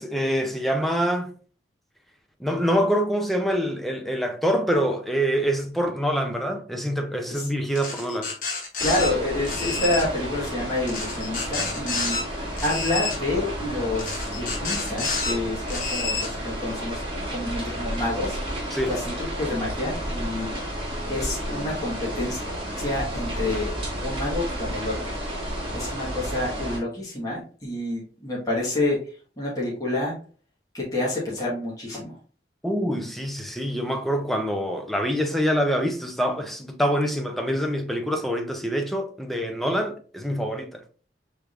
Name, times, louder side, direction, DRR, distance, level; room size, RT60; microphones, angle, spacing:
voice 1, 0.0-1.3 2.4-8.3 18.7-19.0 32.6-40.8, equal, ahead, 0.5 m, -25 dB
sound 1, 7.7-9.1 9.4-10.1 10.9-12.2 12.6-13.2 14.0-15.3 15.7-16.3, left 4 dB, 50° left, 1.1 m, -29 dB
voice 2, 8.8-12.2 12.6-17.0 17.3-18.4 18.9-20.5 21.1-22.4 22.8-23.7 24.0-25.1 25.7-29.0 29.4-30.2 30.7-32.2, left 2 dB, 20° left, 1.4 m, -28 dB
sound 2, 8.8-26.8, equal, 30° right, 1.4 m, -32 dB
4.8 x 3.5 x 2.4 m
head